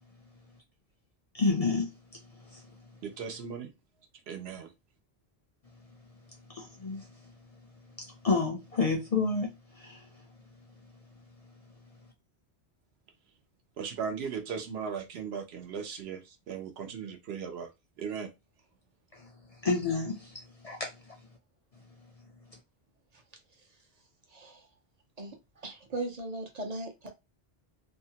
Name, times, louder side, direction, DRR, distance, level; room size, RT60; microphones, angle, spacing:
voice 1, 1.3-2.7 6.5-7.3 8.0-10.1 19.1-19.3 19.6-21.1, left 4 dB, 45° left, 0.5 m, -31 dB
voice 2, 3.0-3.7 4.3-4.7 13.8-17.7 18.0-18.3, right 6 dB, 75° right, 0.9 m, -37 dB
voice 3, 24.3-24.7 25.2-27.1, right 2 dB, 45° right, 0.6 m, -38 dB
2.7 x 2.1 x 2.8 m
omnidirectional pair, 1.1 m